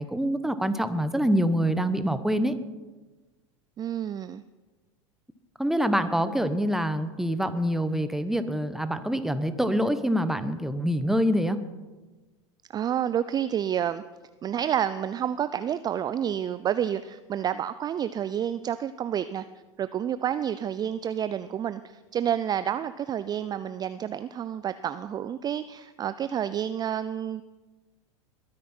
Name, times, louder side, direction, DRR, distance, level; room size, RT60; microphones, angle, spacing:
voice 1, 0.0-2.5 5.6-11.6, equal, ahead, 11 dB, 1.0 m, -25 dB
voice 2, 3.8-4.4 12.7-14.0 14.4-19.5 19.8-27.4, right 9 dB, 25° right, 13 dB, 0.4 m, -29 dB
21.5 x 9.7 x 4.5 m, 1.2 s
hypercardioid pair, 95°, 16 cm